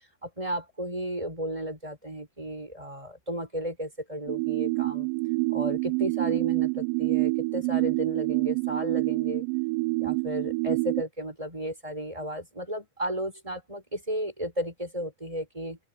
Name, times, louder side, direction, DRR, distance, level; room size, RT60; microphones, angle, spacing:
voice 1, 0.2-5.1 5.5-9.5 10.0-15.8, equal, 10° right, 5.9 m, -34 dB
sound 1, 4.3-11.0, right 27 dB, 80° right, 2.2 m, -27 dB
omnidirectional pair, 4.3 m